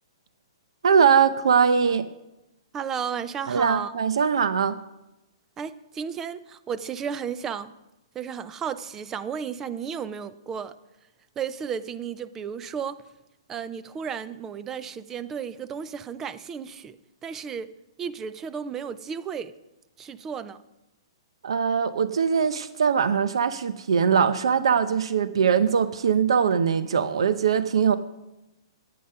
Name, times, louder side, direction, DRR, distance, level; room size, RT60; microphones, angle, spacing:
voice 1, 0.8-2.1 3.5-4.8 21.4-28.0, right 7 dB, 75° right, 12 dB, 0.6 m, -21 dB
voice 2, 2.7-3.9 5.6-7.7 8.1-10.7 11.4-13.0 13.5-17.7 18.0-19.5 20.0-20.6, right 7 dB, 10° right, 14 dB, 0.3 m, -33 dB
10.0 x 9.4 x 5.5 m, 0.95 s
hypercardioid pair, 170°, 3 cm